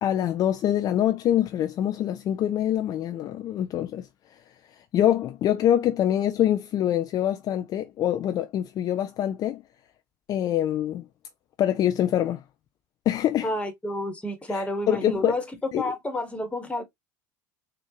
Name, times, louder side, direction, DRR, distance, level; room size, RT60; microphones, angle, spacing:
voice 1, 0.0-4.1 4.9-9.6 10.3-11.0 11.6-12.4 13.1-13.5 14.5-15.4 15.7-15.9, left 11 dB, 40° left, 0.5 m, -25 dB
voice 2, 13.4-15.4 15.8-16.8, left 1 dB, 15° left, 1.4 m, -30 dB
4.4 x 2.4 x 2.9 m
hypercardioid pair, 75°, 9 cm